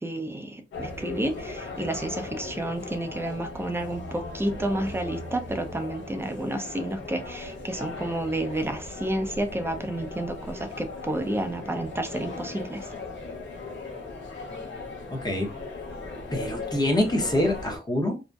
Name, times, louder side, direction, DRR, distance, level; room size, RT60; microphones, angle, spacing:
voice 1, 0.0-12.9, right 1 dB, 15° right, 6 dB, 0.5 m, -30 dB
sound 1, 0.7-17.8, left 3 dB, 85° left, 0.9 m, -38 dB
voice 2, 15.1-15.5 16.3-18.2, left 1 dB, 20° left, 2 dB, 0.8 m, -25 dB
2.6 x 2.0 x 2.2 m, 0.27 s
cardioid pair, 80°, 19 cm